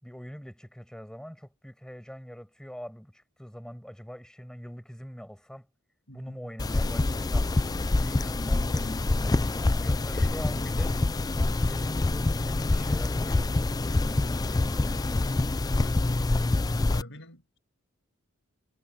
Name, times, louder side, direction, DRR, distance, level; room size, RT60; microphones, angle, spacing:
voice 1, 0.0-5.7 6.1-15.2, equal, 5° left, 6.1 m, -44 dB
voice 2, 6.1-6.9 15.7-16.4 16.8-17.6, left 1 dB, 65° left, 6.1 m, -47 dB
sound 1, 6.6-17.0, left 2 dB, 20° left, 0.4 m, -26 dB
head